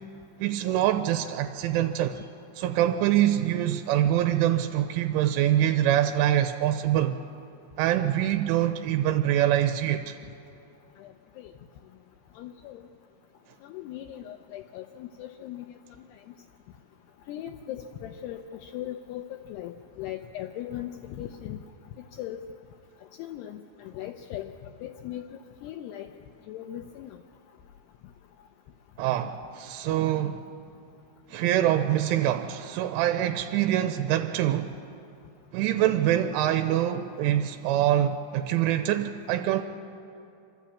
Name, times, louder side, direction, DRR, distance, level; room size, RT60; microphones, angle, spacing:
voice 1, 0.4-2.2 2.6-7.2 7.8-10.2 29.0-30.4 31.3-34.7 35.5-39.6, right 12 dB, 85° right, 7 dB, 3.1 m, -25 dB
voice 2, 11.0-11.5 12.4-12.8 13.6-15.7 17.3-19.2 19.5-21.6 22.2-22.4 23.2-26.1 26.5-27.2, left 12 dB, 85° left, 5 dB, 2.3 m, -39 dB
27.0 x 12.0 x 8.5 m, 2.6 s
omnidirectional pair, 5.6 m